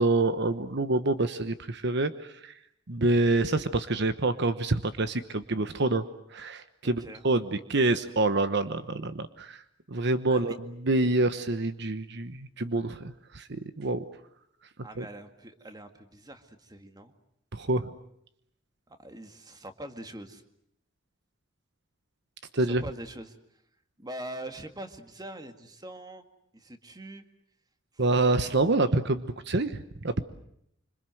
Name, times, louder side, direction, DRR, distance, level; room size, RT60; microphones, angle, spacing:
voice 1, 0.0-2.5 2.9-6.0 6.3-9.6 9.9-14.0 15.0-15.1 17.5-17.9 22.5-22.8 28.0-30.2, right 2 dB, 60° right, 11 dB, 1.1 m, -27 dB
voice 2, 6.8-7.2 10.3-10.5 14.8-17.1 18.9-20.4 22.6-23.4 24.0-26.2 26.5-27.2 27.9-28.0, right 1 dB, 20° right, 7 dB, 2.0 m, -43 dB
26.5 x 26.0 x 7.8 m, 0.75 s
head